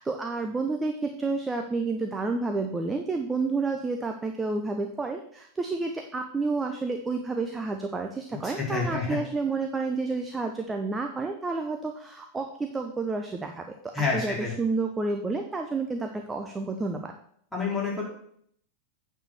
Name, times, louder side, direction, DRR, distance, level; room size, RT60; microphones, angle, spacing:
voice 1, 0.0-17.1, right 3 dB, 15° right, 4 dB, 0.8 m, -30 dB
voice 2, 8.4-9.2 13.9-14.5 17.5-18.0, left 4 dB, 5° left, -6 dB, 4.3 m, -28 dB
9.1 x 4.6 x 6.9 m, 0.67 s
figure-of-eight pair, 90°, 0 cm